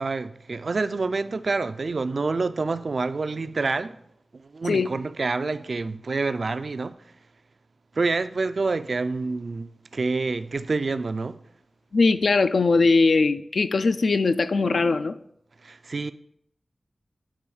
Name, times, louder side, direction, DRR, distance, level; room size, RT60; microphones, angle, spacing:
voice 1, 0.0-4.0 4.3-7.0 8.0-11.4 15.6-16.1, right 3 dB, 65° right, 0.3 m, -27 dB
voice 2, 11.9-15.2, left 3 dB, 80° left, 0.3 m, -20 dB
8.4 x 3.1 x 4.7 m
wide cardioid pair, 55°, 0 cm